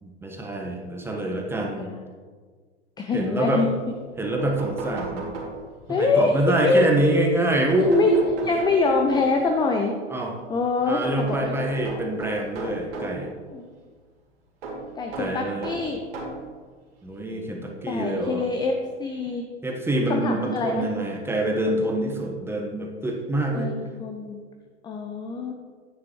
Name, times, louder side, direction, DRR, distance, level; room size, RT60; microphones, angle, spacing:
voice 1, 0.0-1.9 3.1-3.6 4.2-5.3 5.9-8.2 10.1-10.3 10.9-13.3 15.2-15.7 17.0-18.4 19.6-23.7, right 1 dB, 5° right, 1 dB, 1.2 m, -25 dB
voice 2, 3.0-3.7 5.9-7.4 7.9-8.1 8.4-9.9 10.5-12.0 12.9-13.7 15.0-16.0 17.9-18.7 19.0-19.4 20.1-20.9 23.5-24.4 24.8-25.5, left 3 dB, 10° left, 3 dB, 0.6 m, -25 dB
sound 1, 3.9-4.0 4.2-6.0 7.5-9.5 11.0-13.2 14.6-16.5 17.4-17.5 18.8-18.9 19.2-19.3, right 3 dB, 55° right, 2.6 m, -35 dB
10.0 x 9.3 x 3.1 m, 1.5 s
figure-of-eight pair, 95°, 35 cm